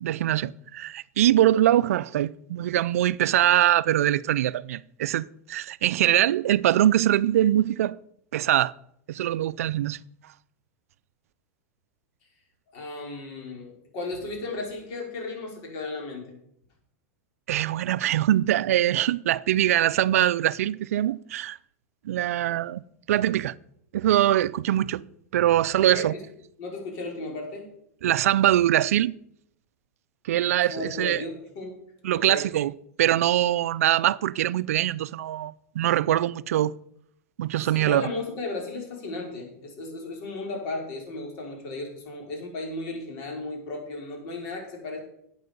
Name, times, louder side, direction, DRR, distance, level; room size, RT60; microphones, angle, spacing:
voice 1, 0.0-8.0 8.3-8.7 9.1-10.0 17.5-21.6 22.0-22.8 23.1-23.5 23.9-25.0 25.3-26.1 28.0-29.1 30.2-31.2 32.0-32.7 33.0-36.7 37.4-38.1, right 12 dB, 80° right, 0.4 m, -23 dB
voice 2, 12.7-16.4 25.7-26.2 26.6-27.7 30.7-31.8 32.1-32.4 37.6-45.0, left 2 dB, 60° left, 5.1 m, -35 dB
12.0 x 8.5 x 5.3 m
hypercardioid pair, 110°, 8 cm